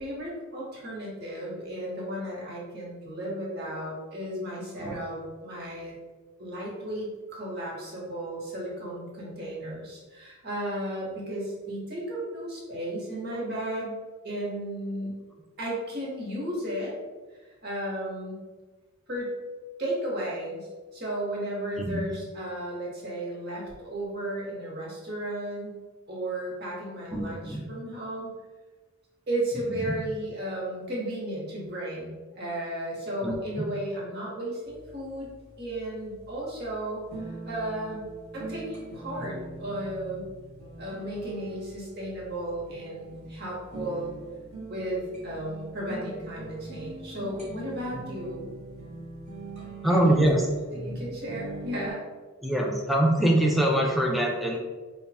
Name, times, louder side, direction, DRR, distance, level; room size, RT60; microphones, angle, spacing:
voice 1, 0.0-5.9 6.4-14.0 14.2-15.2 15.6-16.9 17.6-18.4 19.1-19.3 19.8-25.8 26.1-28.3 29.3-35.3 35.6-40.2 40.8-44.1 44.7-48.5 49.9-50.2 50.7-52.0, right 1 dB, 50° right, -5 dB, 1.1 m, -34 dB
voice 2, 27.1-27.6 29.7-30.0 33.2-33.7 49.8-50.4 52.4-54.6, right 1 dB, ahead, 0 dB, 0.4 m, -24 dB
sound 1, 34.7-51.9, right 2 dB, 30° right, 1.0 m, -42 dB
3.3 x 2.2 x 4.1 m, 1.3 s
head